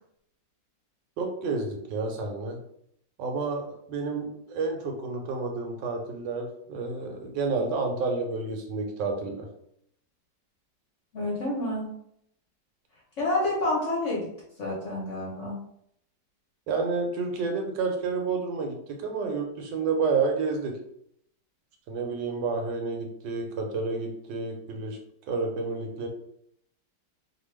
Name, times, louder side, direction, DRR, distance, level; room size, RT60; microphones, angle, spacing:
voice 1, 1.2-2.6 3.2-9.5 16.7-20.8 21.9-25.0 25.3-26.1, right 4 dB, 85° right, 3 dB, 1.3 m, -30 dB
voice 2, 11.1-11.9 13.2-14.3 14.6-15.6, left 2 dB, 55° left, -5 dB, 0.9 m, -28 dB
2.9 x 2.2 x 3.2 m, 0.72 s
omnidirectional pair, 2.0 m